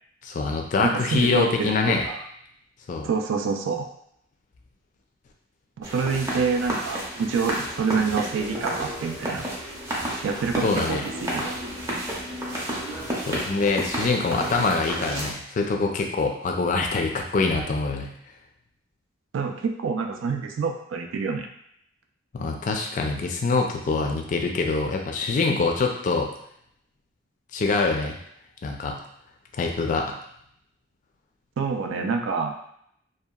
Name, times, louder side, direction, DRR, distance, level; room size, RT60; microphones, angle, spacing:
voice 1, 0.2-2.1 2.9-3.1 10.6-11.0 13.3-18.1 22.3-26.3 27.5-28.2 28.6-29.0 29.6-30.2, left 3 dB, 40° left, 2 dB, 0.3 m, -24 dB
voice 2, 0.8-1.7 2.0-2.2 3.0-3.9 5.8-9.5 10.2-11.6 19.3-21.5 31.6-32.6, right 5 dB, 80° right, 4 dB, 0.3 m, -27 dB
sound 1, 5.8-15.3, right 1 dB, 15° right, 0.5 m, -31 dB
2.7 x 2.2 x 2.3 m, 0.71 s
head